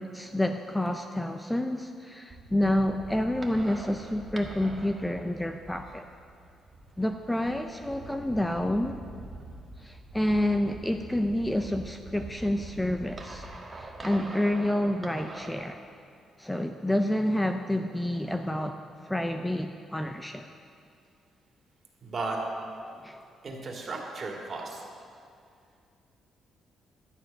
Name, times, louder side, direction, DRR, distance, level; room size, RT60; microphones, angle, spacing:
voice 1, 0.0-6.1 7.0-9.0 9.8-13.4 13.8-15.8 16.4-18.8 19.1-20.5 23.0-23.2, left 1 dB, 10° left, 6 dB, 0.5 m, -29 dB
sound 1, 2.3-15.7, right 2 dB, 25° right, 1.5 m, -45 dB
voice 2, 22.0-22.4 23.4-24.8, right 3 dB, 40° right, 0 dB, 2.3 m, -35 dB
12.0 x 10.0 x 5.4 m, 2.4 s
cardioid pair, 90°, 0 cm